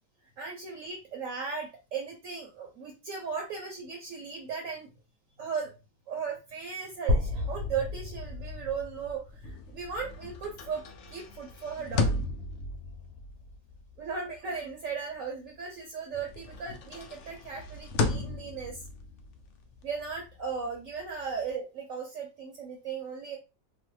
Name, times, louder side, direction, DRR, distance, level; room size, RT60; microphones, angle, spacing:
voice 1, 0.4-4.9 5.4-5.7 6.1-12.1 14.0-18.8 19.8-23.4, right 5 dB, 60° right, 1 dB, 1.0 m, -37 dB
sound 1, 7.1-11.0, left 2 dB, 80° right, 1.4 m, -33 dB
sound 2, 9.3-15.8 16.1-21.5, left 3 dB, 70° left, 0.7 m, -36 dB
3.0 x 2.1 x 3.1 m, 0.28 s
omnidirectional pair, 1.7 m